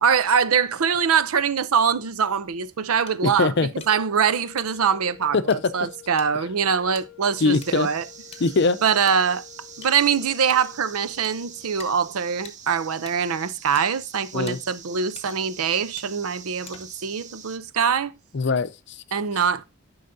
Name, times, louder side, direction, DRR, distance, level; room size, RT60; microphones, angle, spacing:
voice 1, 0.0-3.5 3.9-8.0 8.8-9.4 9.8-18.1 19.1-19.6, right 7 dB, 85° right, 0.6 m, -23 dB
sound 1, 3.1-3.2 3.8-3.9 4.6-4.8 5.5-5.6 6.2-6.3 6.9-7.0 7.6-7.7 8.3-8.6 9.1-9.2 9.8-9.9 10.5-10.8 11.2-11.4 11.8-11.9 12.4-12.6 13.1-13.2 13.7-13.8 14.5-14.6 15.1-15.5 16.0-16.1 16.7-17.1, left 6 dB, 30° left, 0.9 m, -44 dB
voice 2, 3.2-3.7 5.3-5.7 7.4-7.9 8.4-8.8 14.3-14.6 18.3-19.0, left 3 dB, 50° left, 0.5 m, -22 dB
sound 2, 3.7-11.9, left 18 dB, ahead, 1.1 m, -49 dB
sound 3, 7.5-17.6, right 7 dB, 35° right, 0.6 m, -45 dB
11.0 x 5.5 x 2.6 m
head